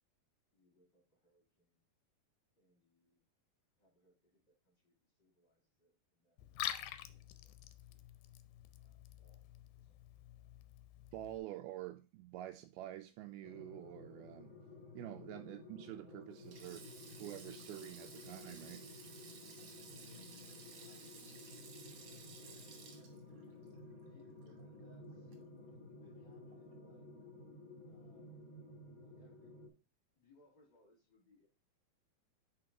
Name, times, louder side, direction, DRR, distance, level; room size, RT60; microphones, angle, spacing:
voice 1, 0.5-1.8 2.6-3.2 3.8-6.7 7.0-8.1 8.8-10.5 15.2-15.4 20.8-21.2 21.6-23.6 24.0-25.3 26.0-27.1 27.9-28.5 29.0-29.6 30.1-31.5, left 1 dB, 35° left, 2.2 m, -71 dB
Liquid, 6.4-11.4, left 12 dB, 80° left, 2.4 m, -47 dB
voice 2, 11.1-14.6 14.9-16.9 17.2-18.9, right 14 dB, 80° right, 2.3 m, -48 dB
sound 1, 13.4-29.7, left 2 dB, 55° left, 1.3 m, -54 dB
Sink (filling or washing), 16.4-24.8 25.1-25.3 26.5-26.8, right 5 dB, 60° right, 1.7 m, -56 dB
5.8 x 4.4 x 4.9 m
omnidirectional pair, 4.6 m